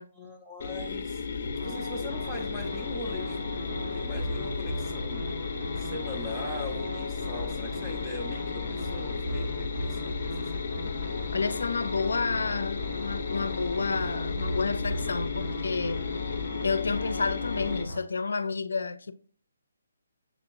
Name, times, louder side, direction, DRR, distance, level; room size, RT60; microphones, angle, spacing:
voice 1, 0.2-5.3 5.8-10.6, left 2 dB, ahead, 0.6 m, -41 dB
sound 1, 0.6-17.8, left 5 dB, 40° left, 0.6 m, -34 dB
sound 2, 1.5-18.0, equal, 60° right, 1.7 m, -38 dB
voice 2, 11.3-16.0 16.6-19.1, left 4 dB, 85° left, 0.4 m, -30 dB
6.9 x 2.8 x 2.5 m
hypercardioid pair, 170°, 0 cm